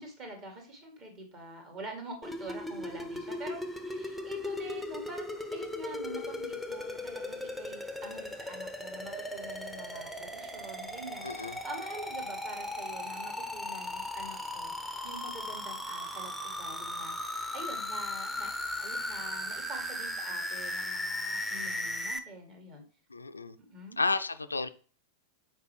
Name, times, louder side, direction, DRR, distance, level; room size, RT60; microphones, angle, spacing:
voice 1, 0.0-18.5 18.8-22.8 23.6-24.0, right 1 dB, 35° right, 2 dB, 2.0 m, -46 dB
sound 1, 2.2-22.2, left 1 dB, ahead, 0.7 m, -37 dB
voice 2, 11.2-11.6 23.1-23.6 24.0-24.7, left 3 dB, 80° left, 11 dB, 0.3 m, -31 dB
6.5 x 4.6 x 3.3 m, 0.40 s
figure-of-eight pair, 90°, 0 cm